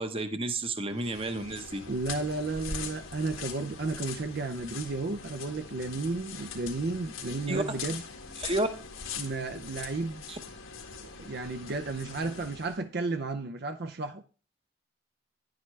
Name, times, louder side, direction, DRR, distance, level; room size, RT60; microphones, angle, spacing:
voice 1, 0.0-1.8 7.5-7.6 8.4-8.7 10.3-10.4, right 2 dB, 25° right, 0.9 m, -31 dB
sound 1, 0.9-12.8, left 5 dB, 80° left, 1.8 m, -42 dB
voice 2, 1.9-8.0 9.2-10.3 10.9-14.2, right 3 dB, 50° right, 0.6 m, -33 dB
10.5 x 9.5 x 3.3 m
head